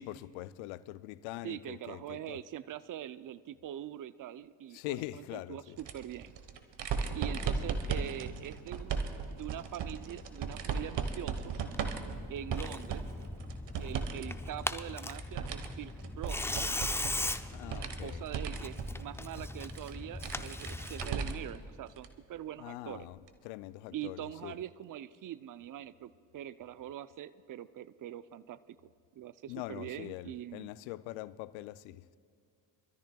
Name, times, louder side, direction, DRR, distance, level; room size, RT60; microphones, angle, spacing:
voice 1, 0.0-2.4 4.7-5.8 7.2-8.0 17.5-18.2 22.6-23.2 23.4-24.5 29.5-32.2, left 16 dB, 80° left, 0.5 m, -43 dB
voice 2, 1.4-6.3 7.1-11.5 12.3-13.1 13.8-16.7 17.5-23.1 23.9-28.8 29.2-30.7, right 11 dB, 45° right, 0.6 m, -43 dB
sound 1, 5.8-14.2 14.6-21.6 22.0-22.1 23.3-23.4, right 5 dB, 60° right, 1.3 m, -37 dB
Tearing, 11.7-21.3, left 2 dB, 5° left, 0.5 m, -39 dB
25.5 x 13.5 x 2.3 m
hypercardioid pair, 50°, 48 cm